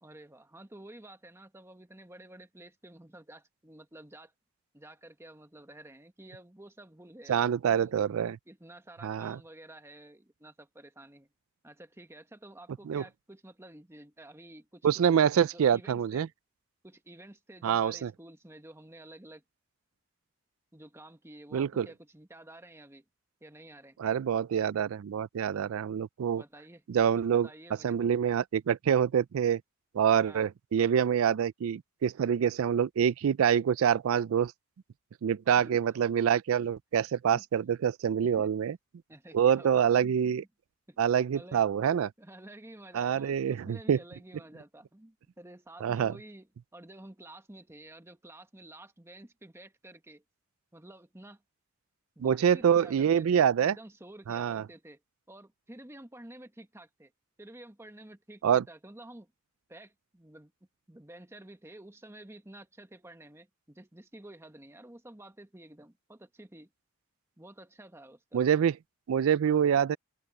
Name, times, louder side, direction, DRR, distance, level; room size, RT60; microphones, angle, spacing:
voice 1, 0.0-4.3 4.7-8.0 8.5-11.3 11.6-14.9 15.1-16.3 16.8-19.4 20.7-23.0 23.4-24.0 25.5-25.7 26.3-28.0 30.3-30.5 35.6-35.8 37.3-37.4 38.2-38.6 39.1-40.5 40.9-41.0 41.3-41.7 42.2-50.2 50.7-51.4 52.2-55.0 55.3-57.1 57.4-59.3 59.7-60.5 60.9-66.7 67.4-68.4 69.4-69.6, right 1 dB, 10° right, 1.1 m, -51 dB
voice 2, 7.3-8.4 9.0-9.4 12.9-13.0 14.8-16.3 17.6-18.1 21.5-21.9 24.0-26.4 26.9-27.5 27.8-29.6 29.9-34.5 35.2-38.7 39.3-40.4 41.0-42.1 42.9-44.0 45.8-46.1 52.2-53.7 54.3-54.6 58.4-58.6 68.3-68.7 69.1-70.0, right 8 dB, 75° right, 0.4 m, -26 dB
open air
head